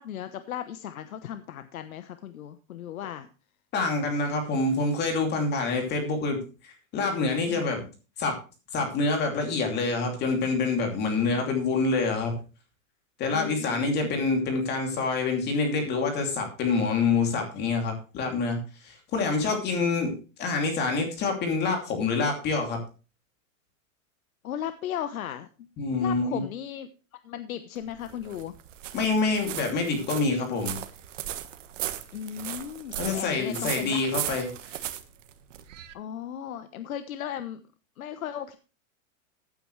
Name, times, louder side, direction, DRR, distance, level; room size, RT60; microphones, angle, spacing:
voice 1, 0.0-3.3 7.5-7.7 11.2-11.4 13.3-14.1 24.4-25.7 26.0-26.9 27.2-28.5 32.1-34.1 35.9-37.6 38.0-38.6, left 10 dB, 85° left, 10 dB, 1.1 m, -36 dB
voice 2, 3.7-7.8 8.2-8.4 8.7-12.4 13.2-20.1 20.4-22.8 25.8-26.4 28.9-30.8 33.0-34.8, left 3 dB, 25° left, 3 dB, 2.7 m, -26 dB
foley walking whitegravel side, 27.8-35.9, right 12 dB, 65° right, 1.5 m, -37 dB
15.5 x 9.1 x 3.2 m, 0.33 s
supercardioid pair, 160°, 41 cm